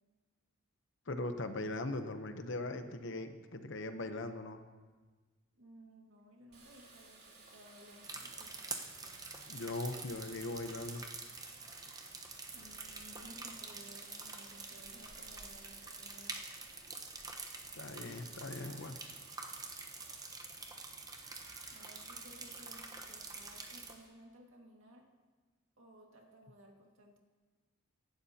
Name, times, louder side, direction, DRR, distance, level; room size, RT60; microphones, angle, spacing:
voice 1, 1.1-4.6 9.5-11.0 17.7-19.0, left 2 dB, 65° left, 8 dB, 0.9 m, -40 dB
voice 2, 5.6-8.6 12.5-16.4 21.7-25.1 25.8-27.2, right 1 dB, 75° right, 0 dB, 2.0 m, -58 dB
Water tap faucet, 6.5-20.3 21.2-24.1, right 3 dB, 55° right, 3.2 m, -59 dB
sound 1, 8.0-23.9, right 3 dB, 20° right, 1.0 m, -47 dB
23.5 x 12.0 x 2.9 m, 1.4 s
head